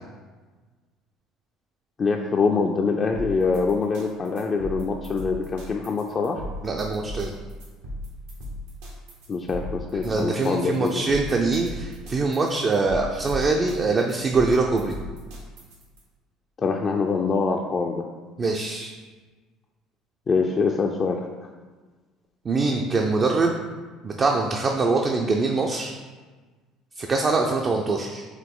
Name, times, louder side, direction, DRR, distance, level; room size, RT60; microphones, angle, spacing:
voice 1, 2.0-6.4 9.3-11.1 16.6-18.0 20.3-21.3, left 4 dB, 35° left, 1 dB, 0.4 m, -24 dB
sound 1, 3.1-16.0, left 1 dB, 85° right, 1.3 m, -37 dB
voice 2, 6.6-7.3 10.0-14.9 18.4-18.9 22.4-23.6 24.0-25.9 27.0-28.3, right 3 dB, 35° right, 1 dB, 0.4 m, -23 dB
4.8 x 2.9 x 3.8 m, 1.4 s
supercardioid pair, 85°, 0 cm